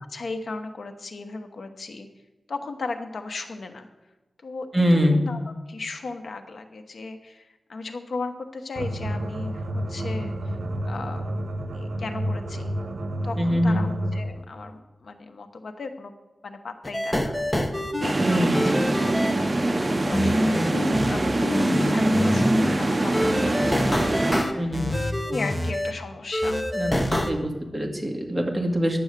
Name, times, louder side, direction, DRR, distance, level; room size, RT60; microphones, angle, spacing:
voice 1, 0.0-2.1 2.5-3.9 4.4-5.4 5.7-10.6 10.8-11.5 11.7-12.7 13.2-16.1 16.4-18.5 19.0-25.0 25.3-26.6, left 3 dB, 75° left, 7 dB, 1.0 m, -36 dB
voice 2, 4.7-5.2 13.4-13.8 18.2-18.7 24.6-24.9 26.7-29.0, equal, 10° right, 2 dB, 1.9 m, -24 dB
sound 1, 8.8-14.4, equal, 75° right, 1.0 m, -30 dB
sound 2, 16.8-18.1 18.5-19.3 20.1-21.1 21.4-22.7 23.1-25.9 26.3-27.3, equal, 15° left, 0.9 m, -25 dB
sound 3, 18.0-24.4, right 2 dB, 30° right, 0.8 m, -24 dB
10.5 x 7.1 x 6.6 m, 1.2 s
wide cardioid pair, 90°, 0 cm